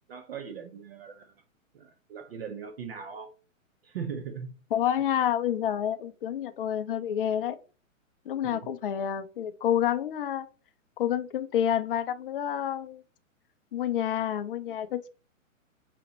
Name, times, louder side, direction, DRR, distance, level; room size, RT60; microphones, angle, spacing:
voice 1, 0.1-1.3 1.7-3.3 3.8-4.5 8.4-8.7, right 6 dB, 50° right, 0.6 m, -39 dB
voice 2, 4.7-7.6 8.3-10.5 11.0-13.0 13.7-15.1, left 10 dB, 45° left, 0.5 m, -28 dB
5.9 x 2.8 x 3.0 m
figure-of-eight pair, 125°, 40 cm